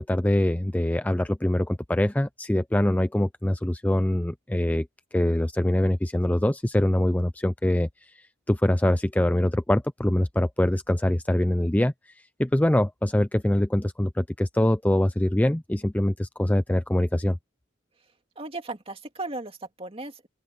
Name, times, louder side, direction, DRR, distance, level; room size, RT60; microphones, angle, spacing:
voice 1, 0.0-4.9 5.1-7.9 8.1-12.1 12.4-17.4, left 1 dB, 10° left, 0.4 m, -24 dB
voice 2, 18.4-20.3, right 2 dB, 30° right, 2.5 m, -36 dB
open air
head